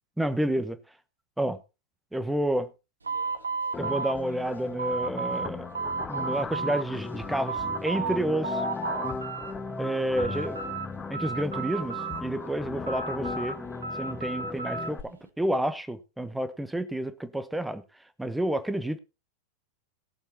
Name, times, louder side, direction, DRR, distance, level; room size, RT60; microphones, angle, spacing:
voice 1, 0.2-0.8 1.4-1.6 2.1-2.7 3.8-5.6 6.1-8.6 9.8-10.6 11.1-13.6 14.0-17.8 18.2-19.0, right 1 dB, 5° right, 1.2 m, -29 dB
sound 1, 3.0-5.5 5.7-6.8 7.2-8.2 8.4-9.5 9.9-10.9 11.1-12.4 12.9-14.9, right 4 dB, 75° right, 1.5 m, -33 dB
sound 2, 3.7-15.0, left 4 dB, 15° left, 1.7 m, -37 dB
18.0 x 7.0 x 4.2 m
figure-of-eight pair, 90°, 0 cm